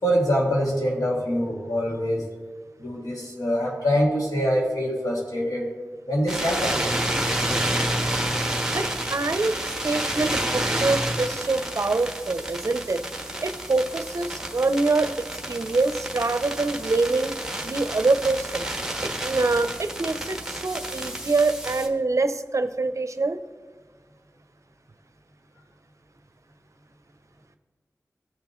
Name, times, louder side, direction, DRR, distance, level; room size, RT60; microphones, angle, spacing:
voice 1, 0.0-2.3 2.8-5.7 6.1-6.8, equal, 80° left, -3 dB, 2.5 m, -24 dB
sound 1, 6.3-21.9, right 1 dB, 10° right, 1.3 m, -29 dB
voice 2, 8.6-13.0 13.4-15.1 15.5-18.7 19.0-23.4, right 3 dB, 55° right, 9 dB, 0.6 m, -25 dB
17.5 x 6.8 x 3.1 m, 1.5 s
wide cardioid pair, 60°, 6 cm